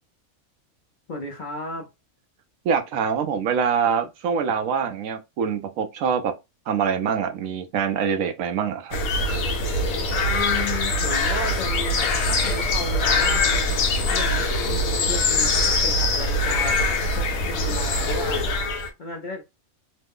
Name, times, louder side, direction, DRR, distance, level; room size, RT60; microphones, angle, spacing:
voice 1, 1.1-1.9 10.3-13.6 14.0-19.4, left 2 dB, 50° left, 0.6 m, -34 dB
voice 2, 2.6-6.4 6.7-9.0, right 7 dB, 70° right, 0.9 m, -24 dB
sound 1, 8.9-18.9, left 2 dB, 75° left, 1.1 m, -23 dB
3.1 x 2.1 x 3.4 m
omnidirectional pair, 1.5 m